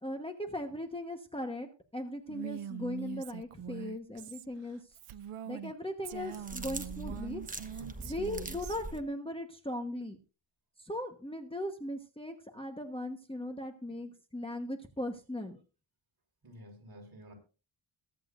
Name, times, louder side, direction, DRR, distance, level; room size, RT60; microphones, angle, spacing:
voice 1, 0.0-4.8 5.4-7.4 8.0-10.2 10.8-15.6, left 1 dB, 10° left, 1.2 m, -38 dB
Female speech woman speaking, 2.3-5.7 6.0-8.8, right 10 dB, 90° right, 0.6 m, -43 dB
sound 1, 6.1-9.0, right 2 dB, 15° right, 1.2 m, -43 dB
voice 2, 7.8-8.1 16.4-17.3, right 1 dB, 45° right, 5.0 m, -51 dB
22.0 x 8.6 x 2.6 m
wide cardioid pair, 140°, 50 cm